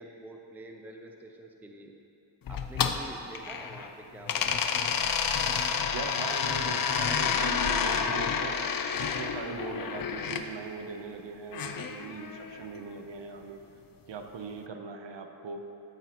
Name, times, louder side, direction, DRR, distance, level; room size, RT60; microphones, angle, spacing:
voice 1, 0.0-1.9 2.5-4.6, right 1 dB, 5° right, 2 dB, 0.5 m, -47 dB
sound 1, 2.5-3.9 4.3-10.4 11.5-12.7, left 6 dB, 45° left, 0.5 m, -29 dB
voice 2, 5.9-8.6 9.0-13.6 14.1-15.7, right 4 dB, 60° right, 5 dB, 0.8 m, -40 dB
13.0 x 7.5 x 3.0 m, 2.9 s
wide cardioid pair, 120°, 49 cm